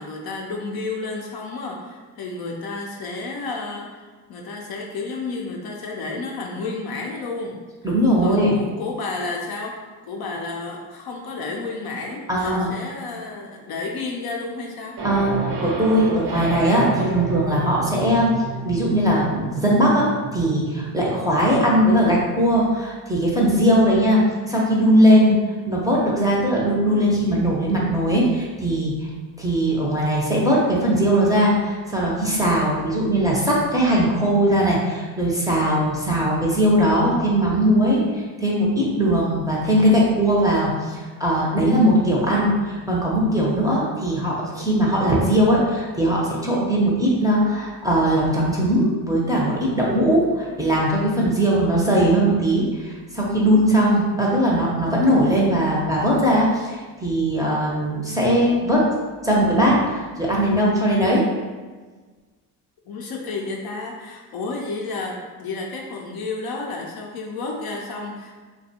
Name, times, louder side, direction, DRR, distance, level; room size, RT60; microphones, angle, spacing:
voice 1, 0.0-7.6 8.2-15.0 24.9-25.2 62.9-68.4, left 3 dB, 50° left, -1 dB, 0.5 m, -31 dB
voice 2, 7.8-8.6 12.3-12.7 15.0-18.3 18.6-20.1 20.3-25.4 25.7-28.9 29.4-58.9 59.2-61.2, equal, 10° right, -5 dB, 0.6 m, -19 dB
sound 1, 15.0-22.0, right 3 dB, 50° right, 0.6 m, -30 dB
2.4 x 2.2 x 2.7 m, 1.4 s
supercardioid pair, 70°, 48 cm